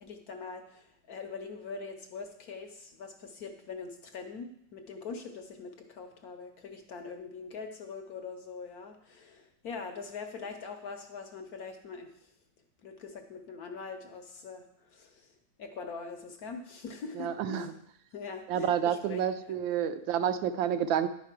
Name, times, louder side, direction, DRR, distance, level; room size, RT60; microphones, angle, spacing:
voice 1, 0.0-12.3 12.8-15.3 15.6-17.8 18.1-19.8 20.2-20.4, left 5 dB, 65° left, 5 dB, 1.0 m, -43 dB
voice 2, 17.2-17.7 18.5-21.1, right 9 dB, 80° right, 10 dB, 1.3 m, -29 dB
10.0 x 4.9 x 5.8 m, 0.74 s
omnidirectional pair, 2.1 m